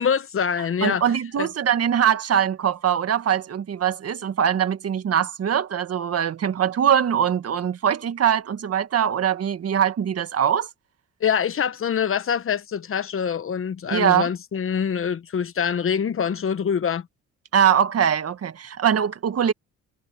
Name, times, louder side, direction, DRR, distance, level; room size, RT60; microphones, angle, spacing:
voice 1, 0.0-1.0 1.4-1.5 11.2-17.1, left 7 dB, 45° left, 1.1 m, -24 dB
voice 2, 0.8-10.7 13.9-14.3 17.5-19.5, right 9 dB, 55° right, 1.8 m, -22 dB
cardioid pair, 90°, 30 cm